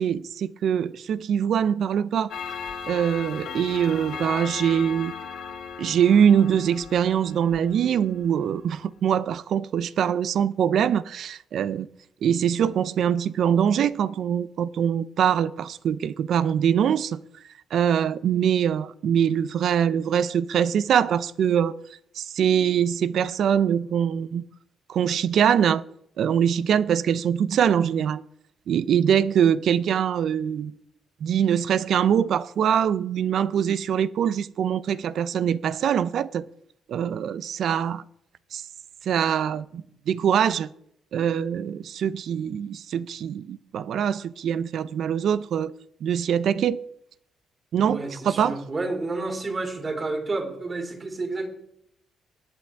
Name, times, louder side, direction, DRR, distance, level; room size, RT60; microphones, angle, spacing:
voice 1, 0.0-2.3 2.9-5.1 5.8-11.9 12.2-17.2 17.7-21.7 22.2-24.4 24.9-25.8 26.2-28.2 28.7-30.7 31.2-36.4 36.9-38.0 38.5-38.6 39.1-40.7 41.1-45.7 46.0-46.8 47.7-48.6, right 8 dB, 65° right, 0.4 m, -23 dB
Clock, 2.3-8.3, left 6 dB, 85° left, 2.6 m, -37 dB
voice 2, 47.8-51.5, right 3 dB, 35° right, 3.2 m, -30 dB
19.0 x 8.5 x 3.4 m
cardioid pair, 90°, 0 cm